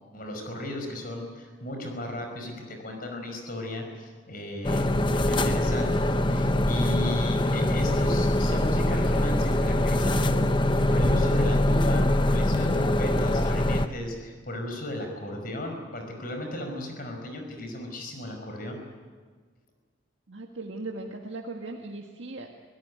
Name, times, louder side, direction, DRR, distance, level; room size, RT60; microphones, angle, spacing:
voice 1, 0.1-10.5 10.9-18.8, left 1 dB, 45° left, 3 dB, 5.2 m, -35 dB
sound 1, 4.6-13.9, left 1 dB, 25° left, 0.9 m, -23 dB
voice 2, 20.3-22.6, right 2 dB, 75° right, 1 dB, 1.7 m, -38 dB
25.5 x 17.0 x 9.5 m, 1.5 s
head